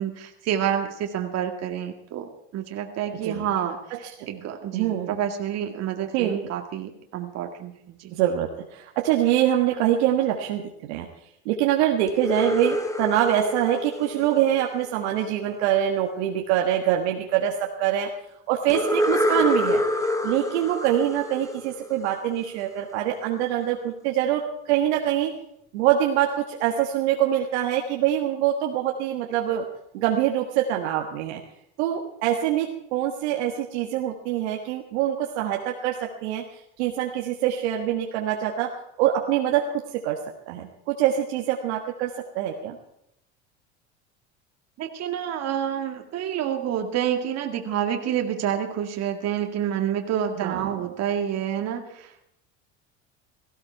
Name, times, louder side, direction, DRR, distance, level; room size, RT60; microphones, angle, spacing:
voice 1, 0.0-8.1 44.8-52.3, right 9 dB, 50° right, 4 dB, 2.0 m, -28 dB
voice 2, 4.7-5.2 6.1-6.4 8.1-11.1 11.4-18.1 18.5-19.8 20.2-25.3 25.7-29.6 29.9-31.4 31.8-36.4 36.8-38.7 39.0-40.2 40.5-42.8 50.4-50.8, right 11 dB, 75° right, 2 dB, 1.6 m, -24 dB
sound 1, 12.1-15.0 18.7-22.4, left 1 dB, 10° left, 1.8 m, -27 dB
17.0 x 16.0 x 4.7 m, 0.77 s
supercardioid pair, 95°, 33 cm